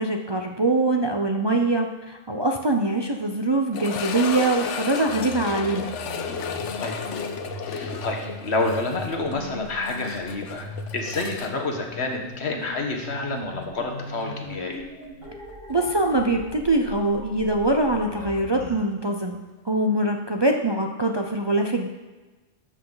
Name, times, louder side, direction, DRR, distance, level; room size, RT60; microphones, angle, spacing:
voice 1, 0.0-5.9 15.7-21.9, right 2 dB, 30° right, 3 dB, 0.5 m, -23 dB
sound 1, 3.7-12.7 12.9-13.0 13.6-13.7 16.3-16.4, left 6 dB, 80° left, 1.1 m, -33 dB
sound 2, 5.0-18.7, left 1 dB, 60° right, 4.5 m, -39 dB
voice 2, 7.7-14.8, left 2 dB, 65° left, 2 dB, 1.6 m, -29 dB
12.5 x 7.9 x 4.0 m, 1.2 s
omnidirectional pair, 1.2 m